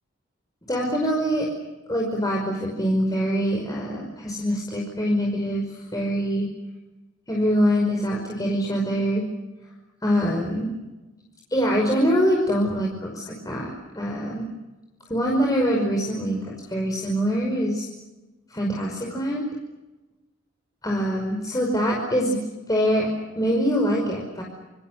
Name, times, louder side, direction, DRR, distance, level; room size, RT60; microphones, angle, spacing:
voice 1, 0.7-1.5 1.9-6.5 7.3-9.2 10.0-10.7 11.5-14.5 15.1-17.9 18.5-19.5 20.8-22.4 22.7-23.1 23.4-24.4, equal, 20° left, -1 dB, 5.5 m, -24 dB
29.0 x 28.0 x 6.6 m, 1.1 s
head